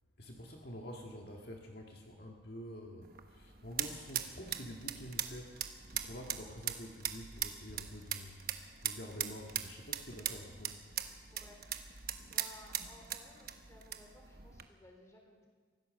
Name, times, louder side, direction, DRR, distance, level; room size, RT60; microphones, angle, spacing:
voice 1, 0.2-10.8, equal, 50° left, 1 dB, 1.8 m, -48 dB
sound 1, 3.0-14.7, right 10 dB, 45° right, 1.2 m, -41 dB
voice 2, 11.3-11.6 12.2-15.5, left 1 dB, 15° left, 2 dB, 3.7 m, -58 dB
24.5 x 17.0 x 6.5 m, 1.5 s
head